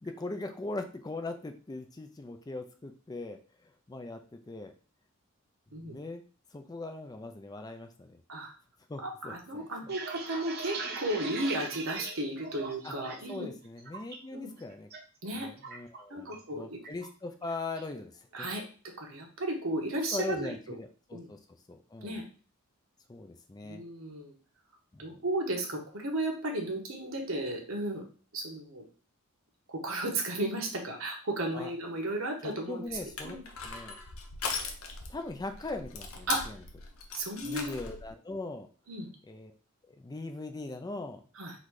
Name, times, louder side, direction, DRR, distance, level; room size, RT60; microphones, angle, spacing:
voice 1, 0.0-4.7 5.8-6.2 6.5-8.2 8.9-9.9 12.8-12.9 13.3-14.9 15.3-18.5 19.9-21.4 21.7-22.2 23.1-23.8 24.9-25.2 31.5-31.7 32.4-33.4 33.6-34.0 35.1-36.6 37.4-38.7 39.2-39.5 39.9-41.2, left 2 dB, 20° left, 6 dB, 0.4 m, -40 dB
voice 2, 9.0-13.5 14.3-14.5 15.2-15.5 16.1-16.8 18.3-18.6 19.0-20.5 21.1-21.3 22.0-22.2 23.6-24.3 25.0-28.0 28.3-28.8 29.7-32.8 33.2-33.4 36.3-36.4 37.1-37.7 38.9-39.1 41.4-41.5, right 1 dB, 70° right, 1 dB, 1.2 m, -34 dB
sound 1, 9.7-13.3 13.7-14.2 14.6-15.0 15.3-16.5 16.8-17.1 17.4-17.9, right 4 dB, 45° right, 0.9 m, -40 dB
Crushing, 32.9-38.1, left 4 dB, 75° left, 0.8 m, -39 dB
4.0 x 2.7 x 4.7 m, 0.38 s
head